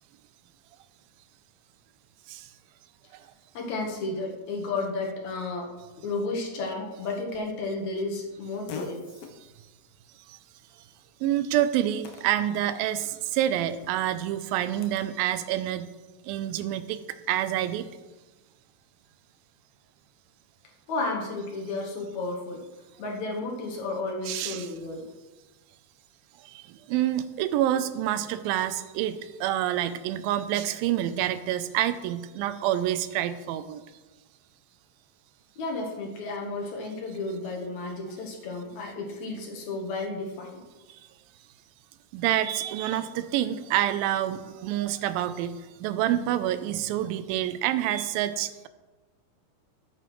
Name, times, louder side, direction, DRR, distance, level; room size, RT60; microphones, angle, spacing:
voice 1, 3.5-5.7 6.0-9.1 20.9-22.6 23.0-25.1 35.6-40.6, left 3 dB, 60° left, 0 dB, 2.3 m, -32 dB
Fart, 7.3-15.1, left 6 dB, 85° left, 1.4 m, -48 dB
voice 2, 11.2-15.9 16.2-17.0 17.3-17.9 24.3-24.7 26.4-33.8 42.1-48.7, right 12 dB, 85° right, 12 dB, 2.4 m, -27 dB
13.0 x 9.0 x 3.1 m, 1.2 s
omnidirectional pair, 4.1 m